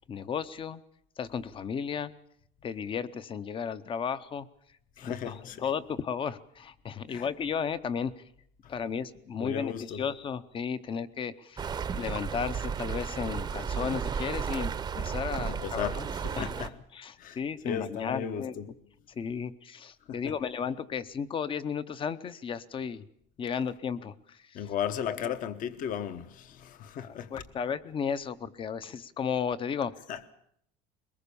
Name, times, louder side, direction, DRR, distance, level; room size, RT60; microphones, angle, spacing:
voice 1, 0.1-0.8 1.2-2.1 2.6-4.5 5.0-8.2 8.7-16.1 16.4-18.5 19.2-23.1 23.4-24.6 25.0-25.3 27.0-29.9, left 7 dB, 25° left, 0.8 m, -34 dB
voice 2, 5.0-5.6 7.1-7.3 8.6-8.7 9.4-10.0 15.4-16.0 16.2-16.7 17.2-17.4 17.6-18.7 20.1-20.3 24.5-27.3 30.1-30.2, left 8 dB, 40° left, 1.1 m, -35 dB
sound 1, 11.6-16.7, right 6 dB, 20° right, 0.8 m, -33 dB
22.0 x 20.0 x 7.0 m
cardioid pair, 160°, 20 cm